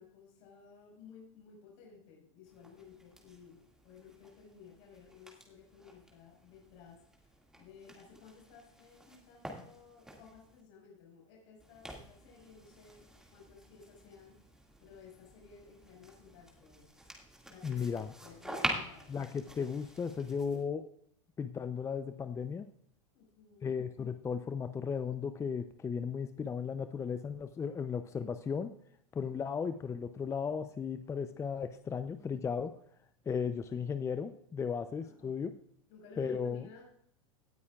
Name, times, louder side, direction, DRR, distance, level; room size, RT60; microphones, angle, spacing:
voice 1, 0.0-14.4 14.8-16.9 17.5-19.1 23.1-23.8 35.0-35.4 35.9-36.8, left 6 dB, 65° left, -2 dB, 5.2 m, -56 dB
sound 1, 2.4-10.6 11.6-20.6, right 1 dB, 5° right, 2.0 m, -46 dB
voice 2, 17.6-18.1 19.1-20.9 21.4-22.7 23.6-28.7 29.1-32.7 33.3-35.5 36.2-36.7, left 6 dB, 15° left, 10 dB, 0.5 m, -35 dB
17.5 x 9.4 x 2.4 m, 0.67 s
hypercardioid pair, 115°, 16 cm